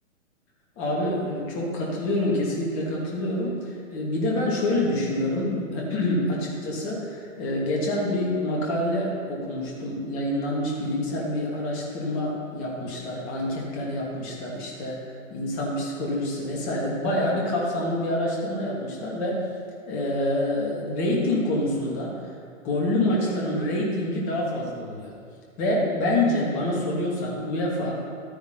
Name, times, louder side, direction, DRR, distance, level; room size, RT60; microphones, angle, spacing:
voice 1, 0.8-15.0 15.3-19.4 19.9-22.1 22.6-25.1 25.6-28.0, left 1 dB, 30° left, -3 dB, 2.8 m, -27 dB
13.0 x 9.6 x 4.1 m, 2.1 s
figure-of-eight pair, 120°, 41 cm